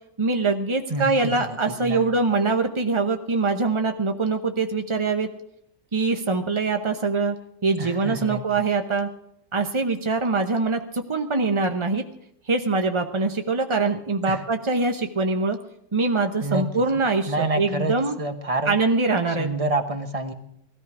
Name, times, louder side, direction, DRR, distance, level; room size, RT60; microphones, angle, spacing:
voice 1, 0.2-5.3 5.9-7.4 7.6-9.1 9.5-12.0 12.5-15.6 15.9-18.2 18.7-19.5, right 3 dB, 50° right, 6 dB, 0.3 m, -23 dB
voice 2, 0.9-2.0 7.8-8.4 14.3-14.4 16.4-16.6 17.3-18.7 19.4-20.3, right 2 dB, 25° right, 7 dB, 0.9 m, -28 dB
17.5 x 13.5 x 4.9 m, 0.75 s
omnidirectional pair, 1.9 m